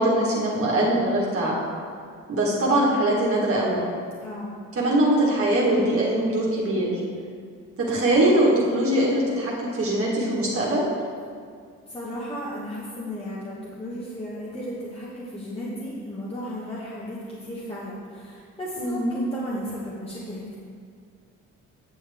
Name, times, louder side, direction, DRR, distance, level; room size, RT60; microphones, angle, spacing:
voice 1, 0.0-1.6 2.3-3.8 4.7-7.0 7.8-10.9 18.8-19.1, right 1 dB, 50° right, -5 dB, 1.7 m, -22 dB
voice 2, 11.9-20.6, equal, 20° left, -7 dB, 1.5 m, -34 dB
8.8 x 7.0 x 3.5 m, 2.1 s
cardioid pair, 90°, 30 cm